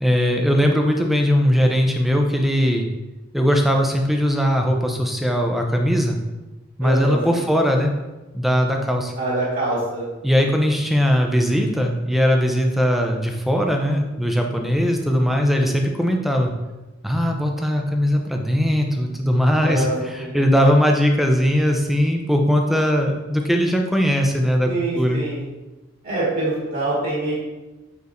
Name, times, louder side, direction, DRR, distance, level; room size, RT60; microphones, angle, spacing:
voice 1, 0.0-2.9 3.3-6.2 6.8-7.9 8.3-9.1 10.2-16.5 17.0-24.7 25.0-25.2, equal, ahead, 2 dB, 0.6 m, -19 dB
voice 2, 6.8-7.5 9.2-10.1 10.3-10.5 19.6-20.4 24.7-25.4 26.0-27.3, right 2 dB, 50° right, -8 dB, 1.8 m, -25 dB
8.1 x 4.5 x 2.6 m, 1.1 s
head